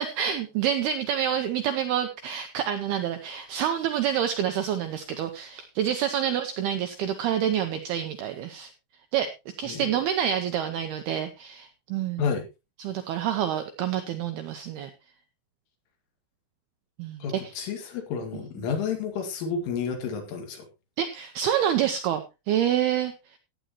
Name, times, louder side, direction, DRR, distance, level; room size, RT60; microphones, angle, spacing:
voice 1, 0.0-8.7 9.1-9.3 9.6-12.3 12.8-14.9 17.0-17.5 18.6-18.7 21.0-23.4, right 9 dB, 85° right, 7 dB, 2.2 m, -27 dB
voice 2, 17.2-20.6, left 6 dB, 80° left, 4 dB, 4.7 m, -30 dB
15.5 x 9.3 x 3.0 m, 0.26 s
omnidirectional pair, 5.6 m